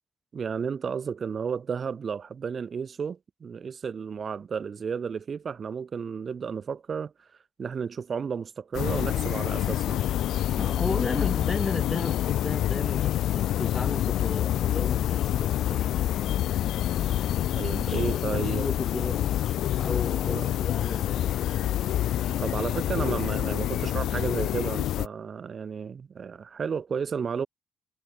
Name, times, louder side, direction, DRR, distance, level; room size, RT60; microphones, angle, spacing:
voice 1, 0.3-7.1 7.6-10.0 17.5-18.7 20.3-20.6 22.4-27.5, right 6 dB, 45° right, 1.8 m, -32 dB
sound 1, 8.7-25.1, left 12 dB, 80° left, 0.6 m, -27 dB
voice 2, 10.6-15.9 17.9-21.4, left 3 dB, 25° left, 2.2 m, -34 dB
cardioid pair, 90°, 0 cm